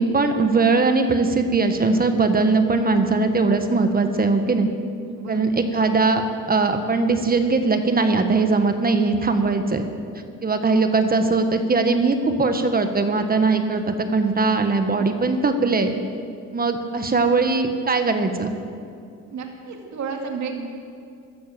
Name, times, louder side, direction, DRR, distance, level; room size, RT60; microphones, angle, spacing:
voice 1, 0.0-4.7 5.3-9.9 10.4-15.9 16.5-18.5, right 3 dB, 30° right, 7 dB, 1.4 m, -20 dB
voice 2, 5.1-5.5 19.3-20.6, right 5 dB, 65° right, 2 dB, 2.4 m, -31 dB
15.0 x 12.0 x 7.7 m, 2.4 s
cardioid pair, 90°, 30 cm